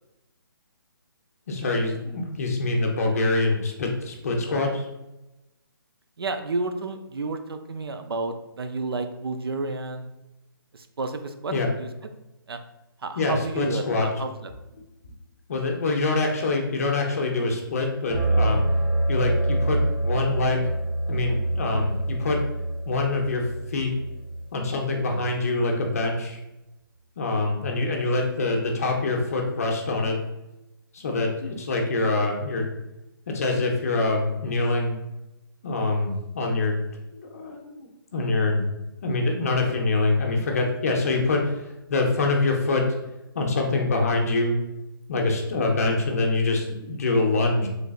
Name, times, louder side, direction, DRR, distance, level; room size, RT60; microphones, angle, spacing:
voice 1, 1.5-4.9 11.5-11.7 13.2-14.1 15.5-18.6 19.1-20.7 21.1-22.4 22.9-23.4 23.7-23.9 24.5-26.4 27.2-30.2 30.9-32.7 33.3-34.9 35.6-36.8 37.3-38.7 39.0-41.6 41.9-42.8 43.3-44.5 45.1-47.7, left 3 dB, 40° left, 1 dB, 0.6 m, -25 dB
voice 2, 6.2-10.1 10.7-11.9 12.5-12.6 13.0-14.5, right 3 dB, 85° right, 7 dB, 0.5 m, -31 dB
sound 1, 18.1-24.6, right 1 dB, 30° right, 0.8 m, -26 dB
3.7 x 3.3 x 2.3 m, 0.96 s
hypercardioid pair, 165°, 12 cm